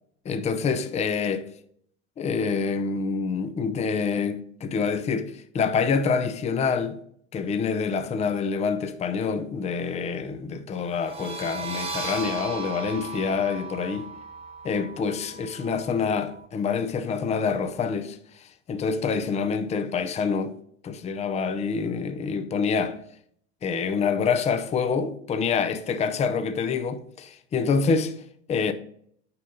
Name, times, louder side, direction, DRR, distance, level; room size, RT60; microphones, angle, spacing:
voice 1, 0.3-1.5 2.2-7.0 7.3-14.1 14.6-20.5 20.8-23.0 23.6-28.1 28.5-28.7, left 5 dB, 20° left, 0.6 m, -26 dB
sound 1, 10.9-16.4, right 3 dB, 20° right, 1.2 m, -37 dB
6.6 x 5.3 x 4.0 m
supercardioid pair, 115°, 31 cm